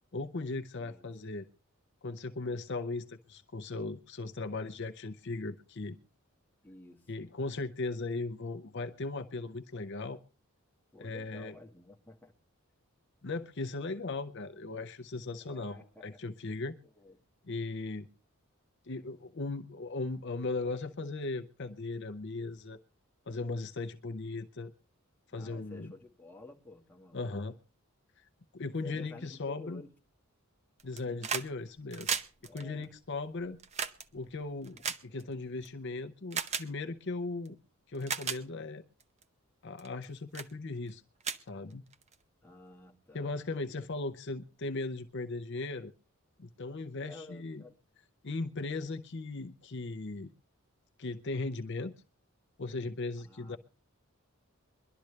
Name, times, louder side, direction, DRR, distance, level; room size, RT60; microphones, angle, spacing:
voice 1, 0.1-1.5 2.0-6.0 7.1-10.2 11.0-11.6 13.2-16.8 17.5-18.1 18.9-22.8 23.3-24.7 25.3-25.9 27.1-27.6 28.5-29.8 30.8-32.1 32.5-33.6 34.1-34.8 35.0-37.6 37.9-38.8 39.6-41.0 41.5-41.8 43.1-45.9 46.4-47.6 48.2-50.3 51.0-51.9 52.6-53.6, left 3 dB, 55° left, 0.7 m, -37 dB
voice 2, 6.6-7.0 10.9-12.3 15.4-16.0 17.0-17.2 25.3-27.4 28.8-29.9 31.1-31.3 32.4-32.9 34.7-34.8 42.4-43.4 47.0-47.7 53.2-53.6, left 2 dB, 10° left, 1.7 m, -51 dB
sound 1, 30.8-31.5 31.8-35.7 36.3-36.7 37.5-37.6 38.0-38.4 39.0-39.2 39.8-40.0 40.3-40.5 40.9-41.0 41.2-42.2 43.3-43.4, right 6 dB, 30° right, 0.8 m, -36 dB
22.5 x 12.0 x 3.3 m
head